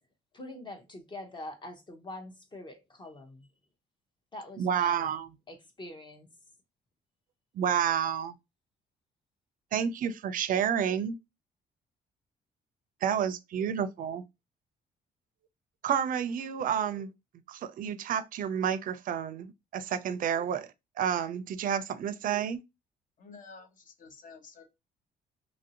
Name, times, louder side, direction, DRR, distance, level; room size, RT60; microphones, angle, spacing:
voice 1, 0.3-3.5 4.3-5.1 5.5-6.3, left 1 dB, 25° left, 0.7 m, -44 dB
voice 2, 4.6-5.3 7.6-8.3 9.7-11.2 13.0-14.2 15.8-17.1 17.5-20.7 21.0-22.6, right 8 dB, 55° right, 0.4 m, -30 dB
voice 3, 23.2-24.6, left 4 dB, 50° left, 0.9 m, -50 dB
3.0 x 2.6 x 2.8 m
cardioid pair, 110°, 17 cm